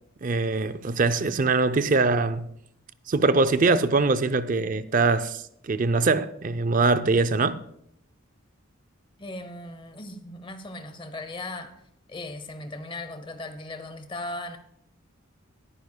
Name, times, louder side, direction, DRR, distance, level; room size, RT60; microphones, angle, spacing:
voice 1, 0.2-2.5 3.1-7.6, right 3 dB, 40° right, 0.5 m, -23 dB
sound 1, 3.7-6.6, left 2 dB, 5° right, 1.2 m, -44 dB
voice 2, 9.2-11.7 12.1-14.6, left 2 dB, 25° left, 0.8 m, -37 dB
20.0 x 9.7 x 2.2 m
head